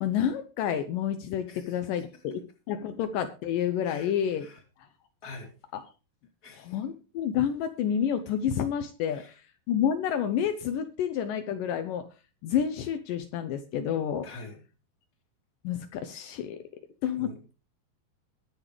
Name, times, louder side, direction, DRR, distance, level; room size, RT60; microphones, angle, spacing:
voice 1, 0.0-4.5 6.5-9.4 9.7-12.1 12.4-14.3 15.6-16.6 17.0-17.5, left 9 dB, 85° left, 8 dB, 2.0 m, -29 dB
voice 2, 6.4-6.7 9.1-9.3 14.2-14.6 17.0-17.4, left 3 dB, 25° left, 1 dB, 2.8 m, -45 dB
21.5 x 7.4 x 3.3 m, 0.33 s
omnidirectional pair, 4.9 m